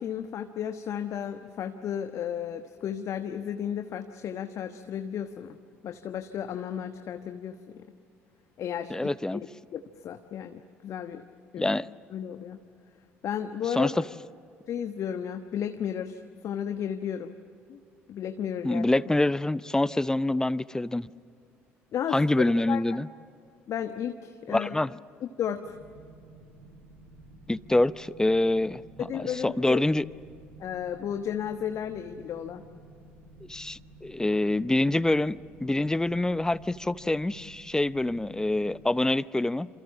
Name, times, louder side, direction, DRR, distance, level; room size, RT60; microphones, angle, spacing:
voice 1, 0.0-5.6 5.8-7.9 8.6-9.1 9.7-11.2 11.5-11.8 12.1-12.6 13.2-14.0 14.7-17.3 17.7-17.8 18.1-18.9 21.9-22.2 22.7-22.8 23.7-24.8 25.2-25.8 29.0-29.8 30.6-32.6, left 9 dB, 50° left, 8 dB, 1.1 m, -33 dB
voice 2, 8.9-9.4 11.6-11.9 13.8-14.0 18.6-21.1 22.1-23.1 24.5-24.9 27.5-30.0 33.5-39.7, left 2 dB, 10° left, 19 dB, 0.6 m, -26 dB
sound 1, 25.6-38.9, right 2 dB, 80° right, 5.9 m, -52 dB
28.0 x 28.0 x 7.4 m, 2.4 s
figure-of-eight pair, 55°, 7 cm